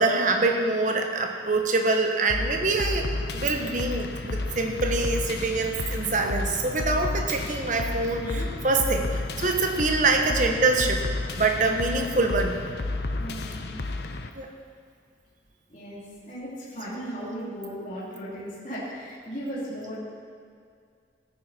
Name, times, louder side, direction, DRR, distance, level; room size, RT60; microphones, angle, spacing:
voice 1, 0.0-11.0 11.4-12.6 14.3-14.5, right 3 dB, 45° right, 3 dB, 1.2 m, -25 dB
sound 1, 2.3-14.3, left 2 dB, 65° left, 0.7 m, -31 dB
voice 2, 8.2-8.5 11.6-12.1 13.2-13.8 15.7-20.0, equal, 45° left, -9 dB, 3.5 m, -36 dB
16.5 x 9.8 x 4.5 m, 2.2 s
head